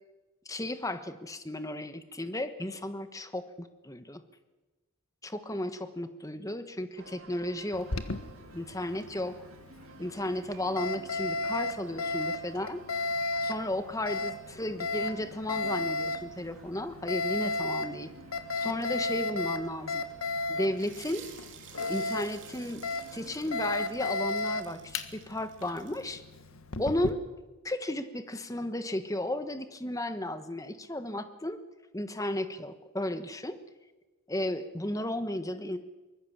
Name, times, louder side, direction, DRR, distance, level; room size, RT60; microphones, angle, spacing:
voice 1, 0.4-4.2 5.2-7.9 8.5-9.4 10.0-12.8 13.4-18.1 18.6-20.0 20.5-21.3 21.9-22.8 23.1-26.2 26.8-27.2 27.6-31.6 31.9-33.6 34.3-35.8, left 1 dB, 15° left, 10 dB, 1.3 m, -34 dB
sound 1, 7.0-24.1, right 3 dB, 75° right, 2.1 m, -54 dB
Alarm, 7.7-27.1, left 2 dB, 75° left, 1.6 m, -35 dB
sound 2, 20.7-26.2, right 9 dB, 55° right, 3.5 m, -52 dB
24.0 x 21.0 x 7.3 m, 1.2 s
head